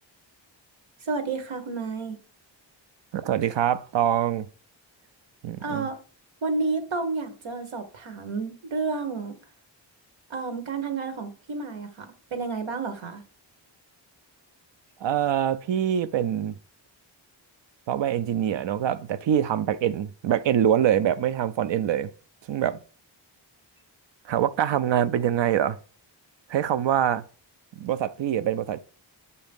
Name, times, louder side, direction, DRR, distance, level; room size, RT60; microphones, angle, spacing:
voice 1, 1.0-2.2 5.6-6.0 6.4-9.3 10.3-12.1 12.3-13.2, right 4 dB, 85° right, 1.2 m, -30 dB
voice 2, 3.1-4.5 5.4-5.9 15.0-16.5 17.9-22.1 22.5-22.8 24.3-25.8 26.5-27.2 27.8-28.8, right 10 dB, 70° right, 0.5 m, -24 dB
7.0 x 2.8 x 5.2 m
wide cardioid pair, 110°, 46 cm